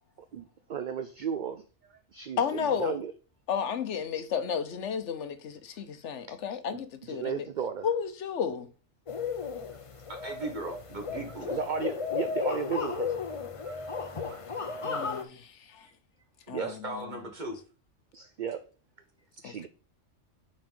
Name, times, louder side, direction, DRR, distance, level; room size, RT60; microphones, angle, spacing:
voice 1, 0.3-3.1 6.3-6.4 6.7-7.9 11.5-13.2 13.6-13.8 14.3-14.4 16.5-16.7 18.1-18.6 19.4-19.7, right 7 dB, 65° right, 0.5 m, -35 dB
voice 2, 2.4-3.0 3.5-7.5 7.8-8.7 14.8-15.9 16.5-17.2 19.4-19.5, left 7 dB, 70° left, 1.0 m, -32 dB
sound 1, 9.1-15.2, left 5 dB, 35° left, 0.6 m, -34 dB
voice 3, 10.1-11.6 16.6-17.6, right 2 dB, 35° right, 1.6 m, -38 dB
6.1 x 4.4 x 5.1 m
omnidirectional pair, 1.3 m